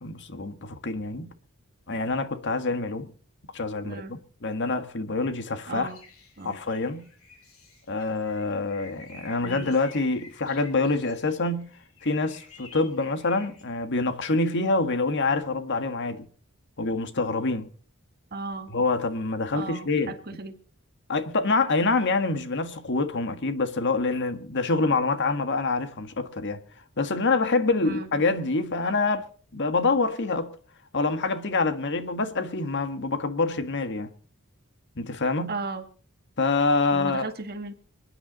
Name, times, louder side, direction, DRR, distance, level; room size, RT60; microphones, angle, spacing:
voice 1, 0.0-1.3 1.9-3.1 3.5-5.9 6.4-7.1 7.9-11.7 12.0-16.3 16.8-17.7 18.7-20.1 21.1-26.6 27.0-29.2 29.5-30.5 30.9-34.1 35.0-35.6 36.4-37.3, left 3 dB, 55° left, 1.6 m, -26 dB
voice 2, 5.7-6.0 6.4-6.6 9.4-9.7 18.3-18.7 19.5-20.6 27.8-28.1 35.5-35.8 36.9-37.7, right 3 dB, 45° right, 1.9 m, -35 dB
sound 1, 5.9-13.6, left 4 dB, 75° left, 6.5 m, -50 dB
27.0 x 9.9 x 4.0 m
head